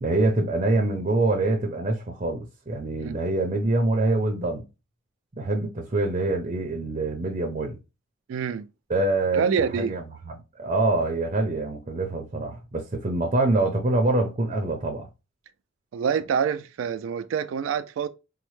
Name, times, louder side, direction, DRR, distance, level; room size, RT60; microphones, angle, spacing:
voice 1, 0.0-4.7 5.4-7.8 8.9-9.5 9.7-15.1, right 2 dB, 35° right, 0.6 m, -25 dB
voice 2, 8.3-8.7 9.3-9.9 15.9-18.1, right 7 dB, 85° right, 0.3 m, -26 dB
4.1 x 2.1 x 3.1 m
head